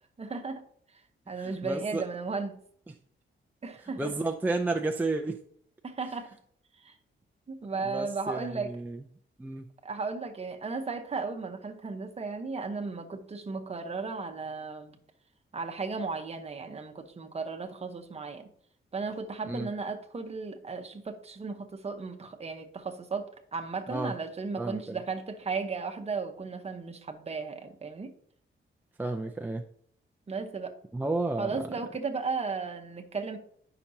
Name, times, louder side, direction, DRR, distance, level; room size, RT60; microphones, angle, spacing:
voice 1, 0.2-0.6 1.3-2.6 3.6-4.1 5.8-6.4 6.8-6.9 7.5-8.7 9.8-15.0 15.5-18.5 18.9-28.1 30.3-30.7 31.4-33.4, right 4 dB, 30° right, 0.9 m, -35 dB
voice 2, 1.4-2.1 4.0-5.4 7.8-9.0 9.4-9.7 19.4-19.7 23.9-24.1 24.6-25.0 29.0-29.6 30.9-31.7, right 2 dB, 10° right, 0.4 m, -32 dB
9.8 x 5.8 x 2.7 m
wide cardioid pair, 140°, 21 cm